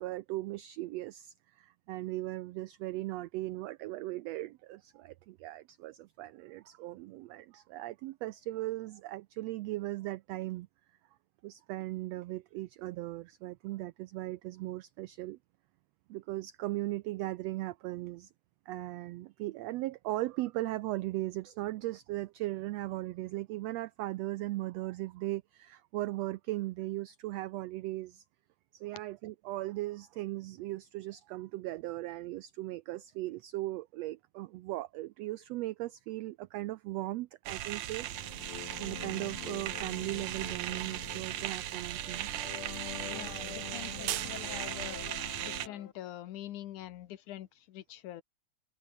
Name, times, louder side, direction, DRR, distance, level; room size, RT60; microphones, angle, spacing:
voice 1, 0.0-10.7 11.4-15.4 16.1-18.3 18.7-28.2 28.7-38.1 38.3-42.3, right 17 dB, 85° right, 1.4 m, -38 dB
sound 1, 37.5-45.7, right 13 dB, 70° right, 2.3 m, -38 dB
sound 2, 38.0-45.9, left 10 dB, 55° left, 1.8 m, -46 dB
voice 2, 43.0-45.0 45.4-48.2, left 13 dB, 75° left, 2.5 m, -45 dB
omnidirectional pair, 3.6 m